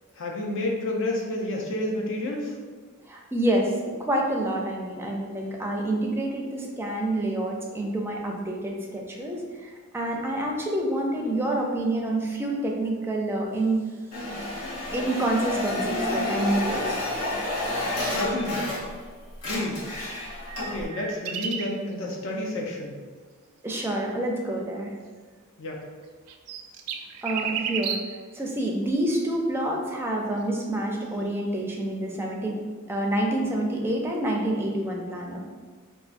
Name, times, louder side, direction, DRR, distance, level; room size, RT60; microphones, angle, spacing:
voice 1, 0.2-2.5 18.0-18.6 19.4-19.9 20.6-23.0 25.6-25.8, left 1 dB, 60° left, 0 dB, 0.6 m, -30 dB
voice 2, 3.1-3.7 4.0-13.8 14.9-17.1 23.6-24.9 27.2-28.0 28.3-32.6 32.9-35.4, right 1 dB, 10° right, -1 dB, 0.4 m, -27 dB
sound 1, 14.1-19.1 19.3-20.9, left 1 dB, 80° left, 1.3 m, -30 dB
sound 2, 19.9-21.8 26.0-28.2 31.2-31.3, right 7 dB, 80° right, 0.3 m, -33 dB
4.4 x 2.3 x 2.5 m, 1.5 s
head